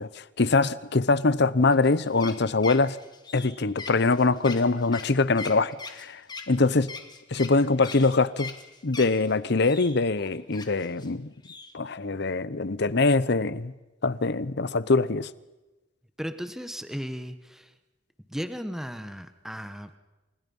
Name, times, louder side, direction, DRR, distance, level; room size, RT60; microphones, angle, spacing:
voice 1, 0.0-3.0 3.3-6.2 6.5-6.9 7.3-8.5 8.8-11.3 11.7-13.7 14.0-15.3, left 3 dB, 60° left, 0.9 m, -23 dB
sound 1, 1.7-9.3 9.7-11.1 11.4-11.7, left 4 dB, 25° left, 2.2 m, -41 dB
voice 2, 16.2-17.7 18.3-20.0, equal, ahead, 1.2 m, -35 dB
30.0 x 27.0 x 5.5 m
head